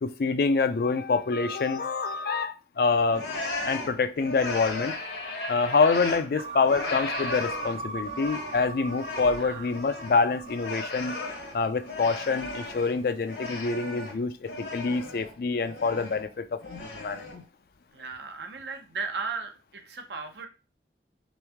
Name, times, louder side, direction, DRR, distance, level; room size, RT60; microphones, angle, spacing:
voice 1, 0.0-3.2 3.7-4.9 5.5-11.2 11.5-17.4, left 4 dB, 55° left, 0.4 m, -26 dB
sound 1, 3.1-6.3 6.6-13.0 13.2-15.3 15.6-16.3 16.6-17.4, left 2 dB, 75° left, 1.0 m, -36 dB
sound 2, 6.4-12.7, right 3 dB, 40° right, 0.8 m, -40 dB
voice 2, 17.9-20.5, right 4 dB, 80° right, 0.7 m, -36 dB
3.5 x 3.1 x 3.4 m
head